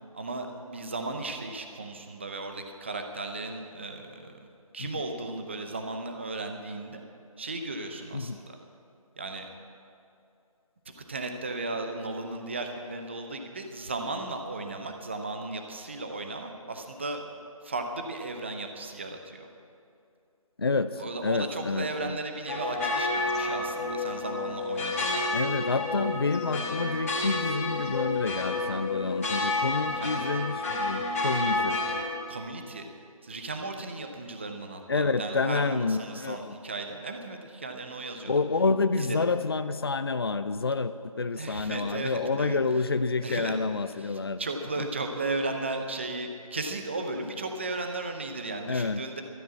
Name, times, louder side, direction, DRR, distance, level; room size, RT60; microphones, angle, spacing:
voice 1, 0.1-4.4 4.7-7.0 7.4-8.6 9.2-9.5 10.9-17.2 17.6-19.5 21.0-25.3 29.9-30.4 31.5-31.8 32.3-32.8 33.2-38.3 38.9-39.2 41.4-42.6 43.2-43.5 43.9-49.2, right 2 dB, 20° right, 5 dB, 0.7 m, -35 dB
voice 2, 20.6-22.2 25.3-31.8 34.9-36.6 38.2-44.4 44.8-44.9 48.7-49.0, left 4 dB, 40° left, 12 dB, 0.5 m, -28 dB
sound 1, 22.5-32.0, left 2 dB, 25° left, 2.6 m, -30 dB
12.5 x 9.9 x 8.3 m, 2.5 s
figure-of-eight pair, 165°, 19 cm